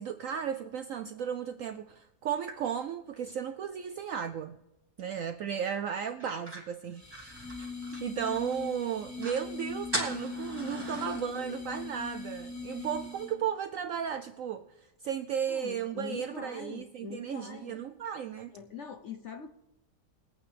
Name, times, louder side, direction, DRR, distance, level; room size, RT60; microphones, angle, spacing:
voice 1, 0.0-4.6 5.0-7.1 7.6-7.7 8.0-18.5, right 8 dB, 75° right, 0.7 m, -35 dB
sound 1, 6.2-8.6 8.9-9.0 9.2-9.5 9.9-11.2, right 2 dB, 15° right, 2.0 m, -39 dB
sound 2, 7.0-13.5, left 4 dB, 15° left, 0.8 m, -41 dB
voice 2, 10.9-11.5 15.5-17.8 18.5-19.5, left 6 dB, 65° left, 0.7 m, -43 dB
22.0 x 8.8 x 3.4 m
omnidirectional pair, 1.8 m